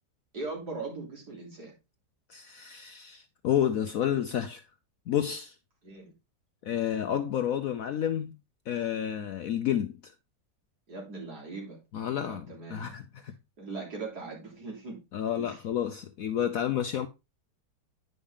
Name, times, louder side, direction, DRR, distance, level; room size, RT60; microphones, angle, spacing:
voice 1, 0.3-1.7 5.8-6.1 10.9-11.8 12.2-12.9 13.6-15.0 15.4-15.6, right 3 dB, 60° right, 3.7 m, -40 dB
voice 2, 2.3-4.6 5.1-5.5 6.6-8.3 8.7-10.1 11.9-13.3 15.1-17.1, left 10 dB, 65° left, 0.9 m, -30 dB
9.9 x 5.4 x 3.7 m
omnidirectional pair, 2.0 m